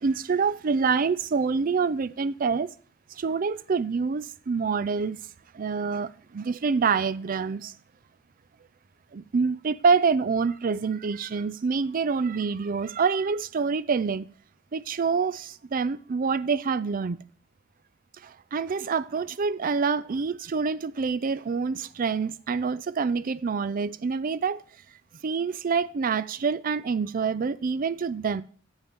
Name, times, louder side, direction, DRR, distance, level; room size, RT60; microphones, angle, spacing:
voice 1, 0.0-2.7 3.1-5.2 5.5-7.7 9.1-14.3 14.7-17.2 18.2-24.6 25.2-28.4, right 5 dB, 45° right, 0.4 m, -26 dB
11.0 x 8.0 x 3.6 m
head